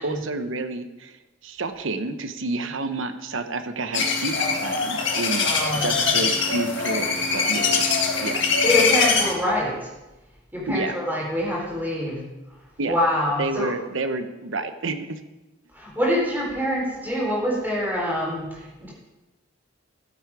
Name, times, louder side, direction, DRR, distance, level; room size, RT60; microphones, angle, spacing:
voice 1, 0.0-7.9 8.2-8.6 10.7-11.0 12.8-13.0 13.4-15.2, right 3 dB, 75° right, 9 dB, 0.9 m, -30 dB
sound 1, 3.9-9.3, left 4 dB, 65° left, 1.8 m, -22 dB
voice 2, 5.4-6.1 8.6-9.9 10.5-12.2 12.8-13.7 15.7-18.9, left 1 dB, 10° right, -4 dB, 4.1 m, -25 dB
14.0 x 8.2 x 4.8 m, 1.1 s
head